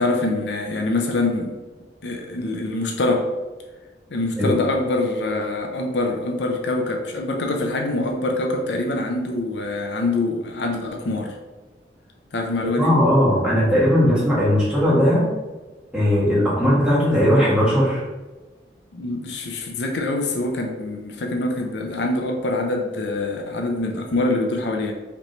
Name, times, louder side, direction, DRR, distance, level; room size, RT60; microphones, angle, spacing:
voice 1, 0.0-1.6 2.0-3.3 4.1-11.3 12.3-13.0 18.9-24.9, left 2 dB, 75° left, 2 dB, 0.6 m, -24 dB
voice 2, 12.8-15.3 15.9-18.0, equal, 5° right, -9 dB, 1.5 m, -18 dB
5.0 x 3.0 x 3.1 m, 1.2 s
head